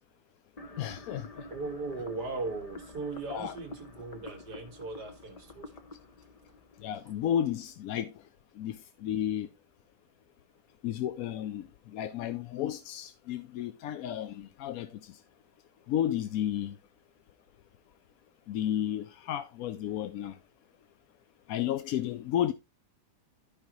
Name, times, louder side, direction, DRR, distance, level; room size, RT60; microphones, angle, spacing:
sound 1, 0.6-7.6, left 2 dB, 40° left, 0.5 m, -48 dB
voice 1, 0.8-1.3 3.3-3.6 6.8-8.1 8.6-9.5 10.8-15.2 15.9-16.8 18.5-20.4 21.5-22.5, left 10 dB, 70° left, 0.9 m, -32 dB
voice 2, 1.5-5.7, right 3 dB, 70° right, 2.2 m, -38 dB
13.5 x 5.1 x 3.0 m
omnidirectional pair, 1.8 m